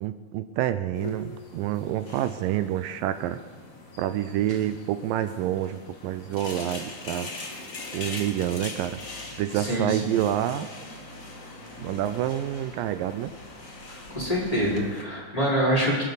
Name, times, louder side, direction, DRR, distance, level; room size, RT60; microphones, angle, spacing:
voice 1, 0.0-3.4 4.0-7.3 7.9-9.0 9.4-10.7 11.8-13.3, right 12 dB, 80° right, 11 dB, 2.1 m, -28 dB
sound 1, 0.9-15.0, left 2 dB, 45° left, 1.1 m, -41 dB
voice 2, 9.5-10.1 13.9-16.0, equal, 10° left, -6 dB, 4.9 m, -26 dB
25.0 x 11.5 x 4.1 m, 1.5 s
omnidirectional pair, 4.2 m